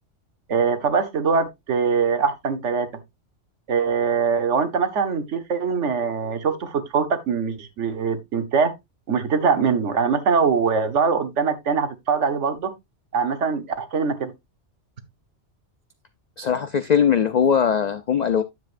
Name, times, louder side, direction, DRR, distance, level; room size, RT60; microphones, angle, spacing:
voice 1, 0.5-2.9 3.7-8.7 9.1-12.7 13.1-14.3, right 5 dB, 80° right, 1.4 m, -22 dB
voice 2, 16.4-18.4, left 7 dB, 55° left, 0.5 m, -20 dB
9.6 x 7.3 x 2.5 m
omnidirectional pair, 1.2 m